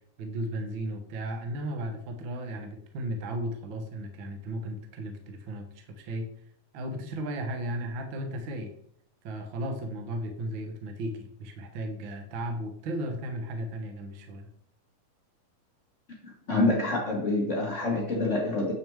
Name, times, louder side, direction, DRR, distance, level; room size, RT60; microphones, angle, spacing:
voice 1, 0.2-6.3 6.7-8.7 9.2-14.5, right 1 dB, 70° right, 5 dB, 1.1 m, -35 dB
voice 2, 16.2-18.7, left 2 dB, 65° left, -2 dB, 0.7 m, -27 dB
8.6 x 6.1 x 3.4 m, 0.67 s
omnidirectional pair, 3.7 m